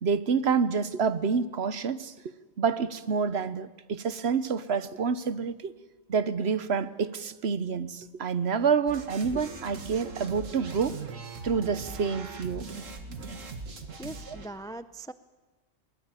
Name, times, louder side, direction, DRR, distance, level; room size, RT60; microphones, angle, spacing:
voice 1, 0.0-5.7 6.1-11.0 11.4-12.6 14.3-14.4, right 6 dB, 60° right, 14 dB, 1.1 m, -28 dB
sound 1, 8.9-14.5, right 4 dB, 85° right, 2.2 m, -40 dB
voice 2, 14.0-15.1, right 1 dB, 5° left, 13 dB, 0.3 m, -40 dB
22.0 x 20.0 x 9.0 m, 1.2 s
omnidirectional pair, 1.3 m